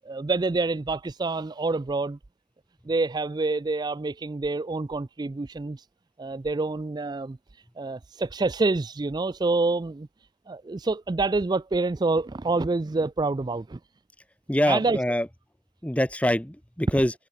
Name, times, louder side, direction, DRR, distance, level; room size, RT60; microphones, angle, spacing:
voice 1, 0.1-2.2 2.9-5.9 6.2-10.1 10.5-13.8 14.7-15.0, right 3 dB, 20° right, 0.3 m, -27 dB
voice 2, 14.5-15.3 15.8-17.1, left 1 dB, 5° left, 1.1 m, -24 dB
head